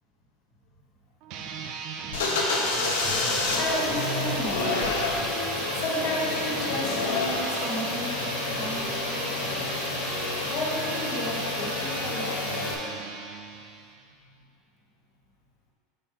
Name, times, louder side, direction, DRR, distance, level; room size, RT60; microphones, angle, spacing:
sound 1, 1.2-14.0, right 5 dB, 55° right, 0.5 m, -37 dB
sound 2, 2.1-12.7, left 3 dB, 85° left, 0.8 m, -29 dB
sound 3, 2.3-6.8 7.8-8.0 8.5-13.4, equal, ahead, 0.7 m, -41 dB
voice 1, 2.8-9.5 10.5-13.0 14.2-14.3, left 1 dB, 50° left, -3 dB, 1.5 m, -34 dB
5.5 x 4.3 x 5.1 m, 2.4 s
supercardioid pair, 115°, 0 cm